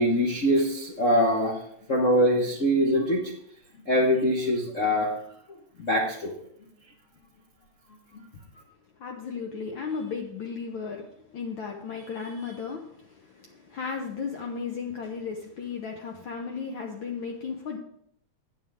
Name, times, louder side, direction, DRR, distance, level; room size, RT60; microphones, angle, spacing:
voice 1, 0.0-1.6 1.9-3.2 3.9-5.1 5.8-6.3 8.1-8.2, equal, 55° left, -2 dB, 0.8 m, -23 dB
voice 2, 9.0-11.1 11.3-17.8, left 5 dB, 80° left, 2 dB, 1.1 m, -35 dB
9.6 x 7.1 x 4.8 m, 0.72 s
omnidirectional pair, 3.4 m